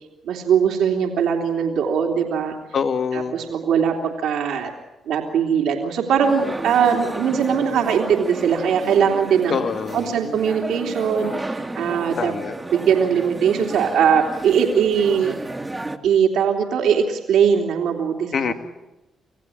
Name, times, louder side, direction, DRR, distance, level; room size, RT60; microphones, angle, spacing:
voice 1, 0.2-2.5 3.1-4.7 5.1-9.6 9.9-12.3 12.7-15.3 16.0-18.5, right 7 dB, 80° right, 2 dB, 2.9 m, -20 dB
voice 2, 2.7-3.4 9.5-10.1 12.2-12.5 18.3-18.5, left 6 dB, 60° left, 9 dB, 1.7 m, -24 dB
sound 1, 6.2-16.0, right 2 dB, 20° right, 1.9 m, -32 dB
26.5 x 16.0 x 10.0 m, 1.0 s
supercardioid pair, 65°, 0 cm